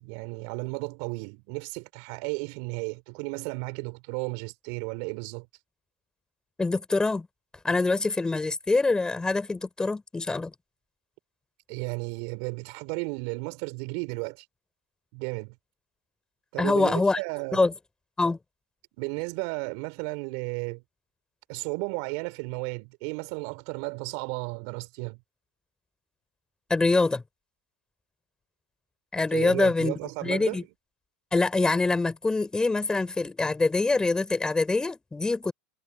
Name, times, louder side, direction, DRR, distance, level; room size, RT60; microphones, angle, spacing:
voice 1, 0.0-5.5 11.7-14.4 15.1-15.6 16.5-17.6 19.0-20.8 21.5-25.2 29.3-30.7, right 33 dB, 60° right, 5.3 m, -34 dB
voice 2, 6.6-7.3 7.6-10.5 16.6-17.2 17.5-17.7 18.2-18.4 26.7-27.2 29.1-29.9 30.2-30.6 31.3-35.5, left 3 dB, 10° left, 6.6 m, -24 dB
hypercardioid pair, 110°, 6 cm